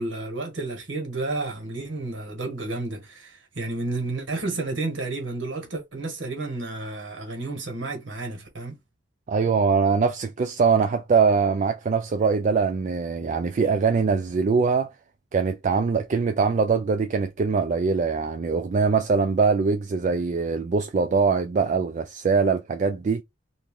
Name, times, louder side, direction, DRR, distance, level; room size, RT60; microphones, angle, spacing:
voice 1, 0.0-8.8, right 2 dB, 70° right, 1.4 m, -31 dB
voice 2, 9.3-14.9 15.3-23.2, right 5 dB, 40° right, 0.3 m, -22 dB
2.9 x 2.6 x 3.6 m
head